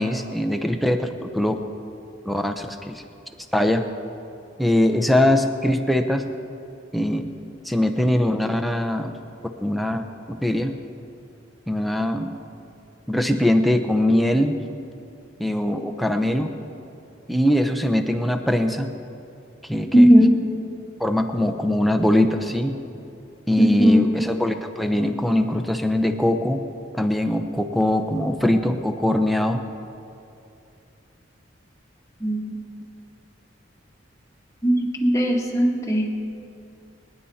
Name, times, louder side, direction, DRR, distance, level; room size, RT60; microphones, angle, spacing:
voice 1, 0.0-1.6 2.2-3.0 3.5-3.8 4.6-6.2 6.9-7.3 7.6-9.1 9.6-10.0 10.3-10.7 11.7-12.3 13.1-14.6 15.4-16.5 17.3-18.9 19.7-20.1 21.0-22.7 23.5-26.6 26.9-29.6, left 1 dB, ahead, 4 dB, 0.7 m, -22 dB
voice 2, 19.9-20.4 23.6-24.0 32.2-32.4 34.6-36.1, equal, 15° left, -1 dB, 1.6 m, -17 dB
25.0 x 10.0 x 4.2 m, 2.7 s
head